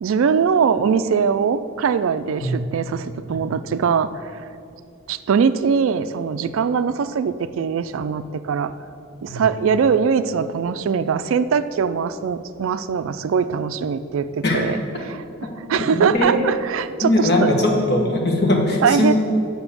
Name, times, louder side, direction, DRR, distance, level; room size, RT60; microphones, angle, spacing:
voice 1, 0.0-4.1 5.1-8.7 9.2-14.8 15.1-15.2 15.7-17.5 18.8-19.1, right 6 dB, 65° right, 12 dB, 0.3 m, -21 dB
voice 2, 15.7-16.4 17.0-19.1, left 1 dB, 50° left, 0 dB, 1.3 m, -20 dB
7.1 x 6.0 x 6.8 m, 2.5 s
head